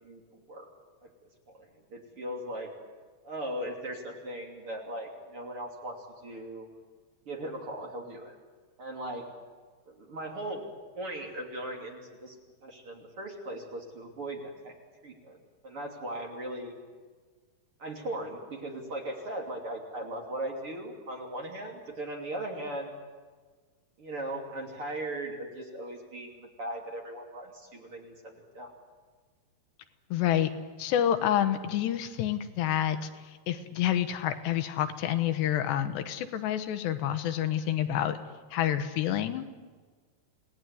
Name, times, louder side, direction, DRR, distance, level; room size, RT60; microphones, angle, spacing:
voice 1, 1.5-2.7 3.2-5.9 6.2-6.7 7.2-8.3 8.8-9.2 9.9-10.6 11.0-12.3 12.6-14.7 15.0-15.4 15.6-16.7 17.8-22.9 24.0-28.7, right 1 dB, 35° right, 0 dB, 3.3 m, -38 dB
voice 2, 30.1-30.5 30.8-33.1 33.5-38.2 38.5-39.5, left 11 dB, 80° left, 8 dB, 3.3 m, -28 dB
29.0 x 19.0 x 9.5 m, 1.5 s
omnidirectional pair, 4.9 m